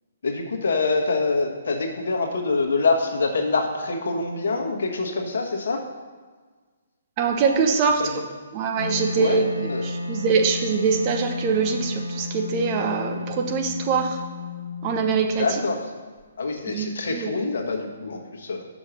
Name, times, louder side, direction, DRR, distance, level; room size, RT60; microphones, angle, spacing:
voice 1, 0.2-5.8 8.0-8.2 9.2-9.4 9.7-9.9 15.4-15.9 16.4-18.6, left 3 dB, 65° left, 2 dB, 1.3 m, -25 dB
voice 2, 7.2-8.0 8.5-14.2 14.8-15.5 16.7-17.4, right 5 dB, 35° right, 3 dB, 0.9 m, -23 dB
Wind instrument woodwind instrument, 8.8-15.7, left 3 dB, 90° left, 1.2 m, -32 dB
6.2 x 5.2 x 6.4 m, 1.5 s
figure-of-eight pair, 130°, 0 cm